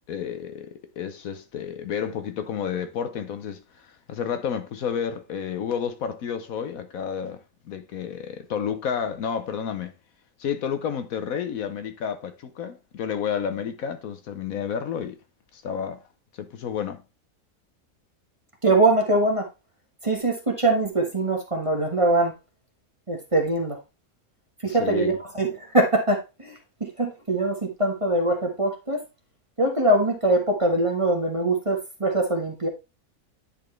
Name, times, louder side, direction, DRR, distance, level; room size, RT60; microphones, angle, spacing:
voice 1, 0.1-9.9 10.4-15.2 15.5-16.0 16.4-17.0 24.7-25.1, left 7 dB, 70° left, 1.1 m, -31 dB
voice 2, 18.6-19.5 20.0-22.3 23.1-23.8 24.6-26.5 26.8-29.0 29.6-32.7, right 2 dB, 20° right, 1.3 m, -23 dB
9.8 x 4.2 x 3.2 m
omnidirectional pair, 1.6 m